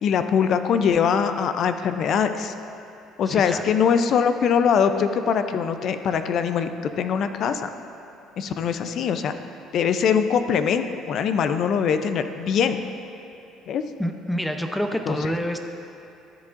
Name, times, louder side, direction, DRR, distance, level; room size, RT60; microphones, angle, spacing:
voice 1, 0.0-2.5 3.2-6.7 7.0-7.7 8.4-9.3 9.7-12.8 13.7-13.8 15.1-15.2, left 7 dB, 60° left, 9 dB, 0.5 m, -22 dB
voice 2, 3.3-3.6 14.0-15.6, equal, 5° left, 5 dB, 0.6 m, -27 dB
13.0 x 7.4 x 2.5 m, 2.9 s
cardioid pair, 95°, 0 cm